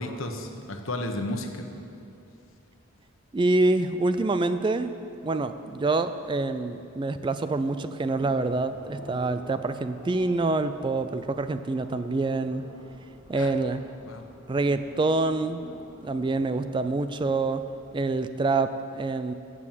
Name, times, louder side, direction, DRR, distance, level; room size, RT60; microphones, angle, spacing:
voice 1, 0.0-1.7 13.3-13.5 14.1-14.2, left 1 dB, 75° left, 4 dB, 1.1 m, -33 dB
voice 2, 3.3-4.9 5.2-12.6 13.3-13.8 14.5-15.6 16.0-17.6 17.9-19.3, right 3 dB, 25° right, 11 dB, 0.3 m, -26 dB
sound 1, 8.1-17.8, equal, 35° left, 3.1 m, -49 dB
15.0 x 6.2 x 7.5 m, 2.6 s
head